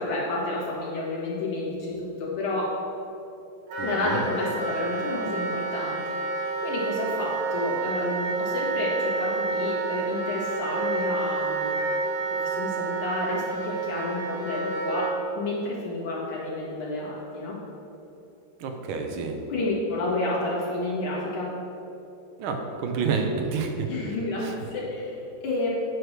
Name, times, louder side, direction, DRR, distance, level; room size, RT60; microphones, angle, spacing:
voice 1, 0.0-2.7 3.8-6.0 6.6-11.8 12.3-15.1 15.4-17.6 19.5-21.5 23.9-25.7, left 2 dB, 80° left, -6 dB, 2.5 m, -30 dB
Wind instrument woodwind instrument, 3.7-15.1, right 3 dB, 60° right, 1.2 m, -29 dB
voice 2, 3.8-4.2 18.6-19.4 22.4-24.1 24.4-24.5, right 5 dB, 75° right, 4 dB, 1.5 m, -29 dB
9.1 x 3.3 x 6.4 m, 2.9 s
omnidirectional pair, 2.3 m